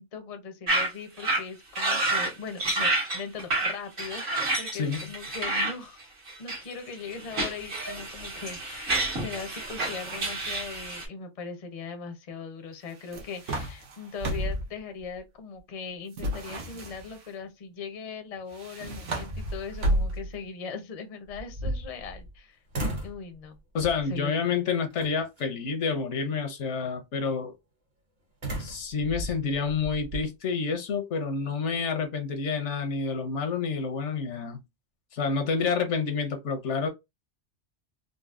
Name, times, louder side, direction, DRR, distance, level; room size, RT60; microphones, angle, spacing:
voice 1, 0.0-6.0 6.4-22.6 23.0-23.6 24.1-24.3, left 5 dB, 40° left, 0.6 m, -40 dB
sound 1, 0.7-0.9 1.2-1.4 1.7-2.3 2.6-5.7 6.3-6.7 7.2-11.1, right 2 dB, 60° right, 1.6 m, -29 dB
voice 2, 4.7-5.1 23.7-27.5 28.6-34.6 35.1-36.9, left 5 dB, 80° left, 1.1 m, -29 dB
sound 2, 9.6-10.9 12.9-14.7 16.1-17.3 18.5-20.5, right 1 dB, 90° right, 1.1 m, -33 dB
sound 3, 13.8-13.9 14.2-15.2 15.6-15.7 18.4-18.5 19.0-19.9 21.3-22.4 22.7-23.2 23.8-24.2 25.0-25.4 28.4-30.2, right 1 dB, 40° right, 0.9 m, -35 dB
3.9 x 2.1 x 2.4 m
omnidirectional pair, 1.2 m